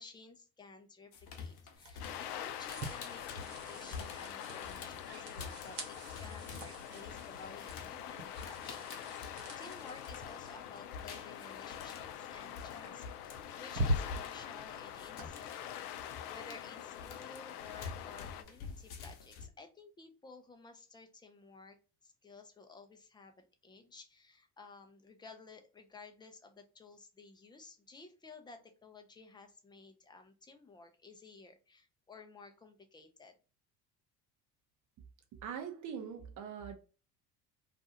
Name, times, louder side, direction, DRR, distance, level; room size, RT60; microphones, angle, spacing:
voice 1, 0.0-21.8 22.0-23.3 23.6-33.4, left 4 dB, 10° left, 0.5 m, -55 dB
sound 1, 1.1-10.5 10.8-19.5, left 5 dB, 50° left, 0.9 m, -49 dB
sound 2, 1.7-15.3, equal, 75° right, 1.0 m, -44 dB
sound 3, 2.0-18.4, left 10 dB, 70° left, 0.5 m, -45 dB
voice 2, 35.3-36.8, right 7 dB, 40° right, 0.7 m, -42 dB
2.5 x 2.3 x 2.8 m
hypercardioid pair, 65°, 49 cm